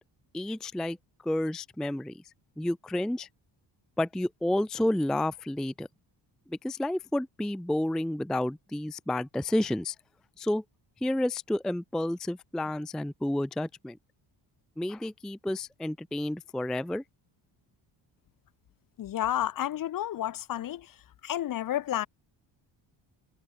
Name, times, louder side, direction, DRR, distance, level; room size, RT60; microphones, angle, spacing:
voice 1, 0.3-1.0 1.2-2.2 2.6-3.3 4.0-5.9 6.5-10.0 10.4-10.6 11.0-14.0 14.8-17.0, left 1 dB, ahead, 0.3 m, -30 dB
voice 2, 19.0-20.8 21.2-22.1, left 12 dB, 45° left, 0.8 m, -30 dB
cardioid pair, 150°, 46 cm